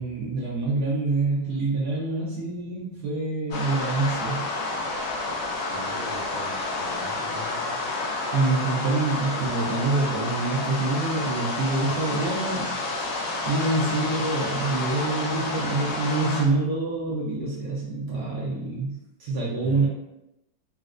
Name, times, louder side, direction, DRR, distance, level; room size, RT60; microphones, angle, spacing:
voice 1, 0.0-4.5 8.3-12.8 13.5-19.9, right 3 dB, 70° right, -5 dB, 1.0 m, -26 dB
sound 1, 3.5-16.4, left 2 dB, 90° left, 1.5 m, -30 dB
voice 2, 5.5-7.8 13.8-13.9 19.6-19.9, left 1 dB, 50° left, -9 dB, 0.5 m, -40 dB
4.1 x 2.0 x 2.4 m, 0.92 s
omnidirectional pair, 2.2 m